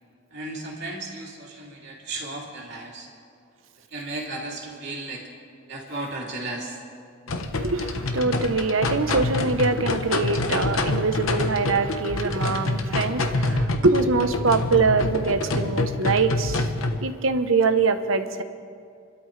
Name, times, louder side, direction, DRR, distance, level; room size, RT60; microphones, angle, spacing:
voice 1, 0.3-3.1 3.9-5.3 5.7-6.8, right 2 dB, 55° right, 3.1 m, -34 dB
sound 1, 7.3-17.0, left 2 dB, 85° left, 1.1 m, -26 dB
voice 2, 7.6-16.7 17.0-18.4, right 4 dB, 75° right, 1.0 m, -23 dB
30.0 x 12.5 x 3.3 m
head